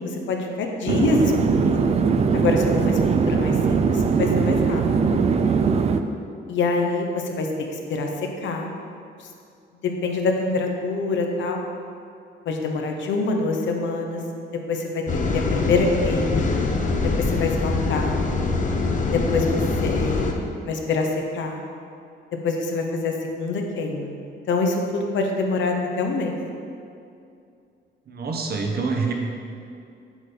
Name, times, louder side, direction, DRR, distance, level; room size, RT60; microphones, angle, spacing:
voice 1, 0.0-1.3 1.6-1.9 2.3-3.0 3.2-4.8 6.5-7.5 7.9-8.7 9.8-11.6 12.5-14.2 14.7-15.0 15.3-16.5 17.2-18.2 19.1-20.3 20.6-21.6 22.4-24.1 24.5-26.3, left 3 dB, 70° left, 2 dB, 0.8 m, -25 dB
sound 1, 0.9-6.0, right 5 dB, 35° right, 0.3 m, -20 dB
sound 2, 15.1-20.3, left 3 dB, 40° left, 0.7 m, -23 dB
voice 2, 28.1-29.1, right 4 dB, 50° right, 2 dB, 0.9 m, -26 dB
6.1 x 5.5 x 3.8 m, 2.5 s
cardioid pair, 90°, 20 cm